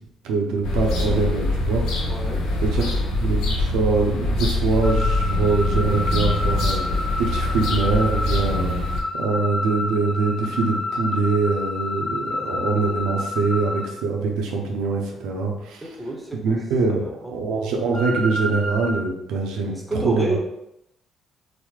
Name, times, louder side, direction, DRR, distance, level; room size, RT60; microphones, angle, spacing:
voice 1, 0.2-2.1 2.6-2.9 3.2-15.8 16.4-19.7 20.0-20.4, right 4 dB, 85° right, 1 dB, 0.6 m, -23 dB
sound 1, 0.6-9.0, left 2 dB, 80° left, 0.7 m, -24 dB
voice 2, 2.0-2.5 15.8-16.6 16.9-17.3 19.7-20.4, right 2 dB, 10° right, 1 dB, 0.8 m, -30 dB
sound 2, 4.8-13.9 17.9-18.9, left 2 dB, 30° left, 0.8 m, -29 dB
3.9 x 2.1 x 3.1 m, 0.84 s
supercardioid pair, 80°, 0 cm